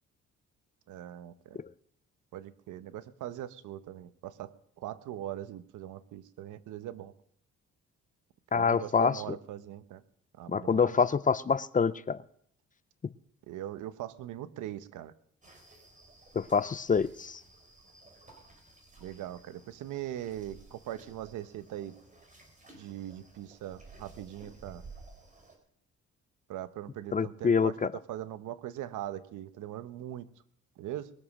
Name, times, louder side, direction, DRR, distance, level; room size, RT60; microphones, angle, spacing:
voice 1, 0.9-1.6 2.3-7.1 8.5-10.0 10.4-10.9 13.5-15.1 19.0-21.9 22.7-24.8 26.5-27.8 28.1-30.2 30.8-31.1, right 12 dB, 85° right, 13 dB, 1.0 m, -41 dB
voice 2, 8.5-9.2 10.5-12.2 16.4-17.4 27.1-27.9, left 5 dB, 25° left, 17 dB, 0.6 m, -26 dB
sound 1, 15.4-25.6, right 3 dB, 25° right, 4.6 m, -55 dB
21.5 x 7.4 x 6.4 m, 0.67 s
cardioid pair, 90°, 30 cm